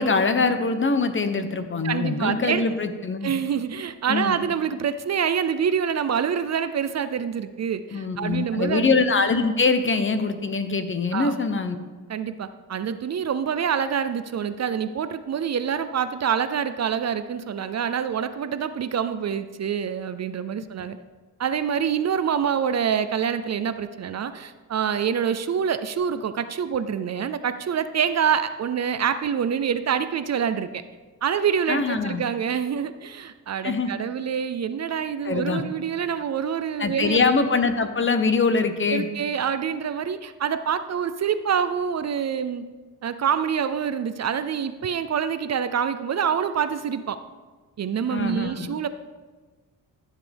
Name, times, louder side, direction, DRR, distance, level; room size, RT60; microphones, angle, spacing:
voice 1, 0.0-3.3 4.1-4.4 7.9-11.8 31.7-32.2 33.6-33.9 35.2-35.6 36.8-39.1 48.1-48.7, left 4 dB, 35° left, 9 dB, 0.8 m, -23 dB
voice 2, 1.8-2.7 3.2-8.9 11.1-11.3 12.1-21.0 21.4-30.8 31.2-37.2 38.9-42.6 43.0-47.2 47.8-48.9, right 7 dB, 45° right, 12 dB, 0.5 m, -26 dB
13.0 x 7.5 x 3.5 m, 1.3 s
cardioid pair, 90°, 37 cm